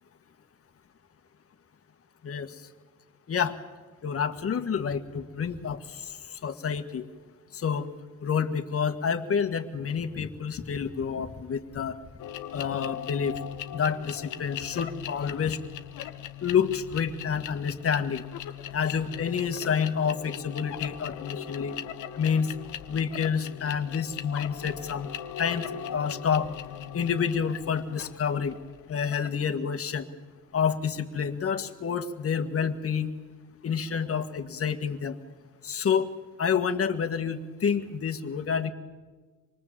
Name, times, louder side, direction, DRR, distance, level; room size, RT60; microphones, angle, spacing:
voice 1, 4.0-5.8 6.4-7.0 7.5-7.9 8.2-12.0 12.5-13.4 13.7-15.6 16.4-18.2 18.7-21.7 22.2-22.5 22.9-25.1 25.4-25.6 25.9-26.5 26.9-28.6 28.9-30.0 30.5-33.1 33.6-35.2 35.6-36.1 36.4-38.7, left 7 dB, 50° left, 7 dB, 1.7 m, -28 dB
sound 1, 12.2-29.4, left 10 dB, 80° left, 1.0 m, -39 dB
26.5 x 20.0 x 7.4 m, 1.4 s
cardioid pair, 90°, 30 cm